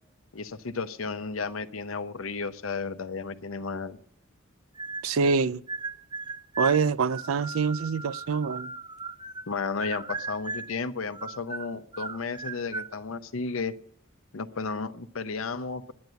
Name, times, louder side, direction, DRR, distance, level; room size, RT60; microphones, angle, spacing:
voice 1, 0.3-4.0 9.5-13.7 14.3-15.9, left 4 dB, 75° left, 0.7 m, -33 dB
sound 1, 4.8-5.4 5.7-9.5 9.8-10.8 11.1-12.9, right 4 dB, 20° right, 0.7 m, -37 dB
voice 2, 5.0-5.6 6.6-8.7, right 5 dB, 80° right, 0.4 m, -25 dB
10.5 x 9.2 x 8.1 m
head